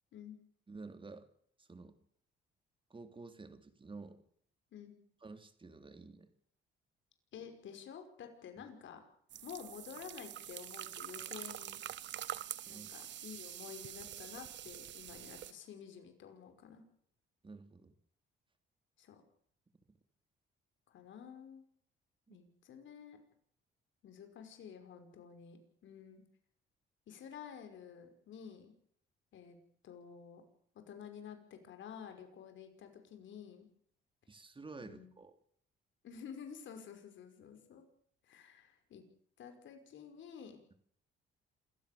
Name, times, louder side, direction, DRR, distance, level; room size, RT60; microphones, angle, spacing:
voice 1, 0.7-1.3 1.6-2.0 2.9-4.2 5.2-6.3 8.6-8.7 12.7-12.9 17.4-17.9 19.9-20.0 22.3-22.4 34.3-35.3, right 3 dB, 25° right, 9 dB, 3.3 m, -51 dB
voice 2, 7.3-9.0 9.4-11.8 12.7-16.8 19.0-19.2 20.9-21.6 22.3-23.2 24.0-26.2 27.1-28.7 29.3-29.6 29.8-30.4 30.8-33.7 34.8-35.1 36.0-37.9 38.2-39.0 39.4-40.6, left 7 dB, 75° left, 6 dB, 5.5 m, -51 dB
sound 1, 9.3-15.5, right 11 dB, 65° right, 0.9 m, -46 dB
27.0 x 15.5 x 6.9 m, 0.63 s
cardioid pair, 90°, 20 cm